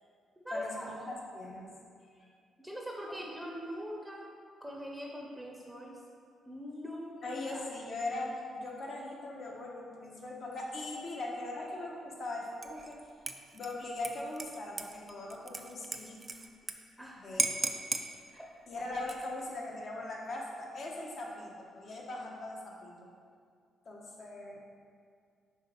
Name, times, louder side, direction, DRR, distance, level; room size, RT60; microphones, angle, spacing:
voice 1, 0.4-1.2 2.6-4.3 4.6-6.0 6.4-7.6 17.0-17.6 18.3-18.5, equal, 5° right, -2 dB, 0.8 m, -42 dB
voice 2, 1.1-1.7 2.2-2.3 7.2-13.0 13.5-16.2 17.2-17.6 18.7-22.9 23.8-24.6, left 2 dB, 55° left, -2 dB, 1.1 m, -40 dB
Dishes pots and pans / Liquid, 12.6-12.9 13.3-16.7 17.0-17.1 17.4-18.1 18.9-19.4, right 3 dB, 30° right, 0.4 m, -36 dB
5.4 x 3.5 x 5.1 m, 2.2 s
cardioid pair, 70°, 0 cm